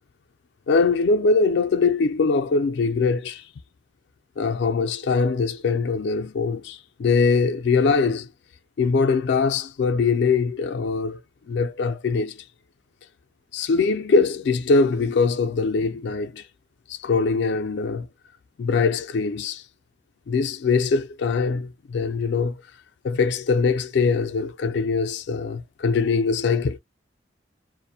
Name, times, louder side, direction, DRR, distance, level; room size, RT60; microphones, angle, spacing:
voice 1, 0.7-3.4 4.4-8.3 8.8-11.2 11.5-12.4 13.5-16.4 16.9-18.1 18.6-19.6 20.3-22.6 23.0-26.8, left 4 dB, 65° left, 0.3 m, -22 dB
2.4 x 2.0 x 2.7 m
head